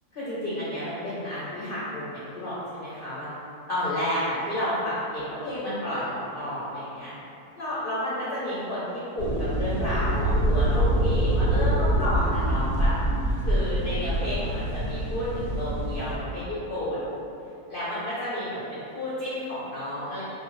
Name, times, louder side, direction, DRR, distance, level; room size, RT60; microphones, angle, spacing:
voice 1, 0.1-3.3 3.7-7.1 7.6-12.9 13.4-17.1 17.7-20.2, equal, 60° left, -10 dB, 0.6 m, -31 dB
sound 1, 9.2-16.1, right 1 dB, 55° right, 0.6 m, -25 dB
2.8 x 2.3 x 3.0 m, 2.7 s
omnidirectional pair, 1.6 m